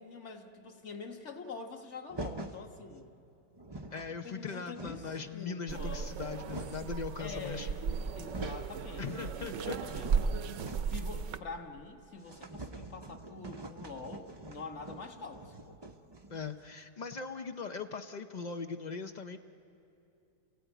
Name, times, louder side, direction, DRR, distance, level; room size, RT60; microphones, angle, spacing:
voice 1, 0.0-3.1 4.1-6.1 7.2-7.8 8.2-10.3 10.9-15.8, left 4 dB, 45° left, 4 dB, 1.6 m, -45 dB
sound 1, 2.1-2.6 3.3-3.4 3.5-4.1 4.5-5.3 6.0-7.0 7.7-7.8 8.1-8.7 9.1-11.1 11.3-11.4 11.7-11.8 12.2-16.7, right 2 dB, 40° right, 0.3 m, -45 dB
voice 2, 3.9-7.7 9.0-9.8 16.3-19.4, left 5 dB, 90° left, 6 dB, 0.3 m, -40 dB
sound 2, 5.7-11.4, right 6 dB, 60° right, 0.9 m, -35 dB
28.5 x 16.5 x 9.1 m, 2.7 s
omnidirectional pair, 1.8 m